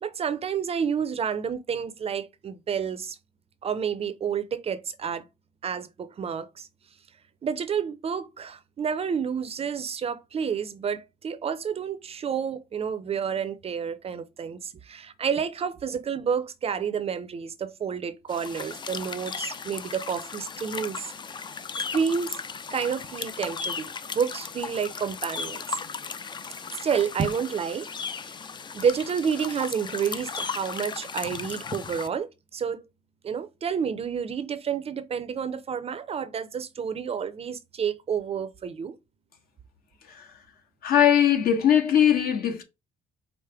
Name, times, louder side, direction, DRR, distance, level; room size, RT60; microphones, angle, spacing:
voice 1, 0.0-3.2 3.6-5.2 5.6-6.7 7.4-21.1 21.9-22.4 22.7-25.8 26.7-27.9 28.1-28.3 28.7-32.8 33.2-39.0, right 7 dB, 35° right, 0.6 m, -30 dB
sound 1, 18.3-32.1, left 5 dB, 25° left, 0.5 m, -36 dB
voice 2, 40.8-42.6, left 9 dB, 60° left, 1.3 m, -20 dB
4.9 x 2.1 x 4.5 m
cardioid pair, 110°, 17 cm